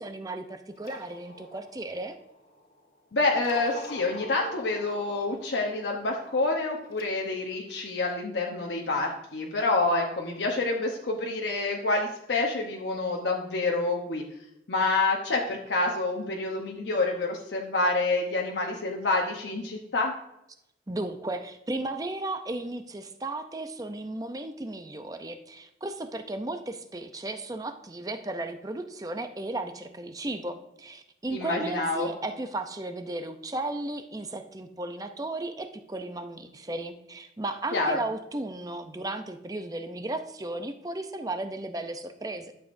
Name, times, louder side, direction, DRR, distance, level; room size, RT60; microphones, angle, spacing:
voice 1, 0.0-2.2 20.9-42.5, right 2 dB, 20° right, 8 dB, 0.5 m, -35 dB
sound 1, 0.7-2.9 3.3-7.0, left 1 dB, 55° left, 1.4 m, -44 dB
voice 2, 3.1-14.2 14.7-20.1 31.3-32.1 37.7-38.0, left 3 dB, 80° left, 0 dB, 0.9 m, -27 dB
11.5 x 7.1 x 2.6 m, 0.84 s
head